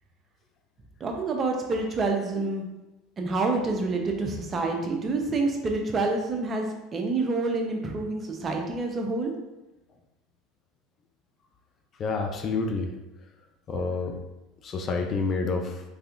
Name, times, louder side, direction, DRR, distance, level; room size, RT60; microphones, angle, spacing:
voice 1, 1.0-2.7 3.2-9.3, right 3 dB, 30° right, 2 dB, 0.7 m, -27 dB
voice 2, 12.0-12.9 13.7-14.2 14.6-15.8, left 4 dB, 40° left, 4 dB, 0.5 m, -28 dB
3.5 x 3.2 x 2.5 m, 1.0 s
hypercardioid pair, 80°, 0 cm